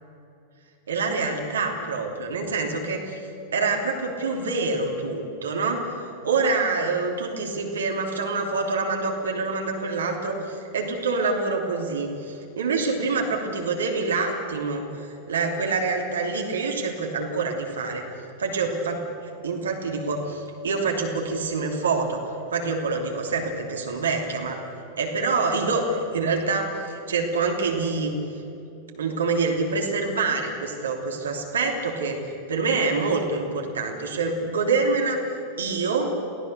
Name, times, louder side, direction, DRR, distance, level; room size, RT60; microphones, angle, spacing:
voice 1, 0.9-3.2 3.5-5.9 6.2-14.8 15.3-18.1 18.4-19.0 19.4-22.2 22.5-24.6 25.0-28.1 28.9-35.2 35.6-36.2, right 4 dB, 70° right, 1 dB, 3.0 m, -26 dB
29.0 x 17.5 x 6.7 m, 2.7 s
figure-of-eight pair, 90°, 0 cm